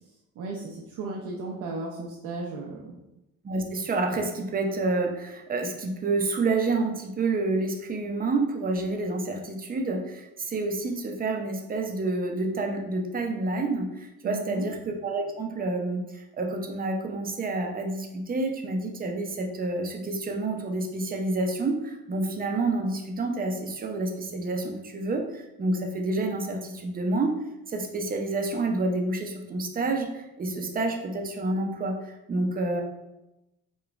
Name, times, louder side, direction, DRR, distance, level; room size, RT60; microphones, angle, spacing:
voice 1, 0.4-3.0 14.2-14.7, right 3 dB, 70° right, -3 dB, 0.6 m, -35 dB
voice 2, 3.4-27.3 27.7-32.8, right 2 dB, 25° right, 3 dB, 0.6 m, -29 dB
4.9 x 2.3 x 2.4 m, 0.93 s
cardioid pair, 105°, 33 cm